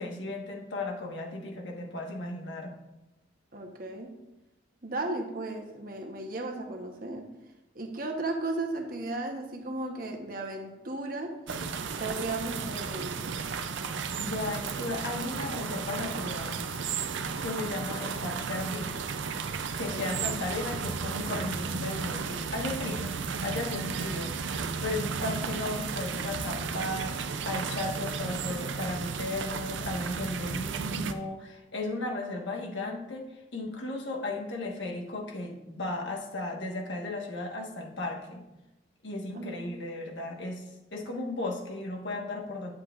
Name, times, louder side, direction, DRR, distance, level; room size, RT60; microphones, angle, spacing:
voice 1, 0.0-2.7 13.6-13.9 14.2-16.7 17.4-19.0 19.7-38.5 39.0-42.7, left 2 dB, 75° left, 0 dB, 1.5 m, -35 dB
voice 2, 3.5-4.1 4.8-7.3 7.7-11.3 12.0-13.2 19.9-20.0 39.3-39.6, right 2 dB, 50° right, 2 dB, 1.1 m, -35 dB
sound 1, 11.5-31.1, right 5 dB, 80° right, 0.5 m, -34 dB
10.0 x 7.6 x 2.5 m, 0.98 s
head